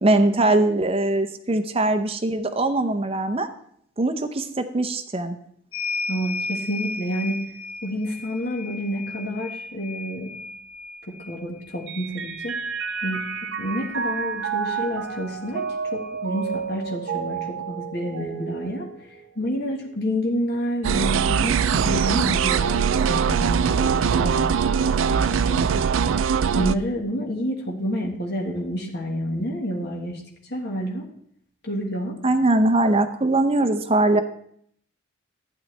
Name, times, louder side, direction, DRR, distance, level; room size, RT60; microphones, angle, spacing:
voice 1, 0.0-3.5 4.0-5.4 32.2-34.2, right 2 dB, 30° right, 8 dB, 0.6 m, -21 dB
sound 1, 5.7-13.8 15.1-15.2 15.5-16.6, left 3 dB, 25° left, 1.2 m, -35 dB
voice 2, 6.1-7.4 7.8-10.3 11.1-12.6 13.0-13.2 13.6-15.6 15.9-18.9 19.3-22.8 23.1-24.5 25.1-25.8 26.5-30.2 30.5-31.0 31.6-32.2, equal, 55° left, 0 dB, 1.4 m, -29 dB
Mallet percussion, 11.9-19.6, right 6 dB, 60° right, 0.8 m, -31 dB
sound 2, 20.8-26.7, right 6 dB, 75° right, 0.4 m, -21 dB
12.0 x 9.3 x 3.3 m, 0.67 s
head